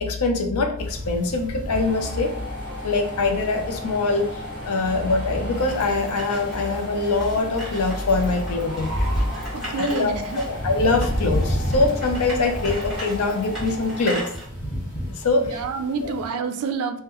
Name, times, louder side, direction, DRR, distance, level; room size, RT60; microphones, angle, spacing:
voice 1, 0.0-2.3 2.8-8.9 9.8-10.1 10.5-14.3 15.1-15.5 16.0-16.1, left 3 dB, 85° left, 6 dB, 0.5 m, -23 dB
sound 1, 0.8-16.3, equal, 35° left, 1.0 m, -32 dB
sound 2, 1.7-14.2, left 1 dB, 20° right, 1.0 m, -34 dB
sound 3, 5.6-14.4, right 1 dB, ahead, 1.2 m, -39 dB
voice 2, 9.5-10.4 15.4-17.0, right 5 dB, 80° right, 9 dB, 0.3 m, -28 dB
3.5 x 2.2 x 2.9 m, 0.65 s
head